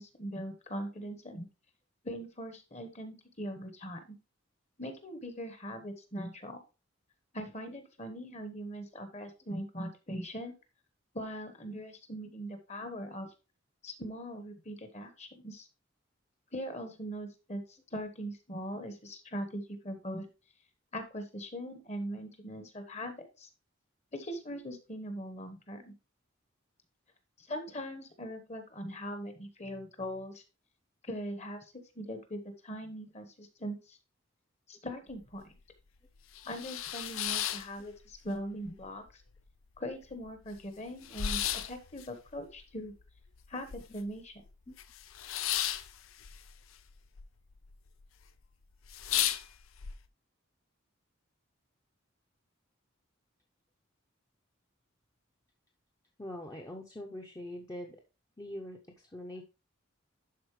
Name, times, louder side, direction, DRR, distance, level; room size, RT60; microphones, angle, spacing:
voice 1, 0.0-1.5 2.0-4.2 4.8-6.6 7.3-10.5 11.1-13.3 13.8-15.7 16.5-17.6 17.9-20.3 20.9-23.5 24.1-25.9 27.4-30.4 31.0-31.6 31.9-34.0 34.7-35.4 36.4-39.0 39.8-41.4 41.7-42.9 43.5-44.3, equal, 35° left, 8 dB, 1.1 m, -41 dB
sound 1, 35.1-35.2 35.6-35.7 36.2-38.4 38.7-39.4 39.8-39.9 40.0-44.2 44.5-47.3 47.5-48.1 48.4-48.5 48.8-49.9, left 11 dB, 85° left, 0.5 m, -35 dB
voice 2, 56.2-58.0 58.4-59.4, left 1 dB, 20° left, 1 dB, 0.7 m, -43 dB
11.5 x 4.2 x 3.1 m, 0.30 s
head